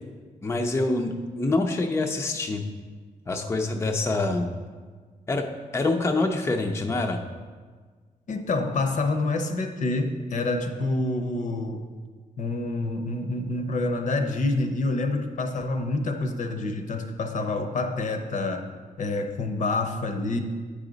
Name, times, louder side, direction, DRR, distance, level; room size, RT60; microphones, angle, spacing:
voice 1, 0.4-2.6 3.3-4.5 5.3-5.5 5.7-7.2, left 2 dB, 20° left, 3 dB, 0.5 m, -25 dB
voice 2, 8.3-11.8 12.4-18.6 19.0-20.4, left 2 dB, 60° left, 5 dB, 0.7 m, -27 dB
8.7 x 5.0 x 3.9 m, 1.5 s
cardioid pair, 115°, 14 cm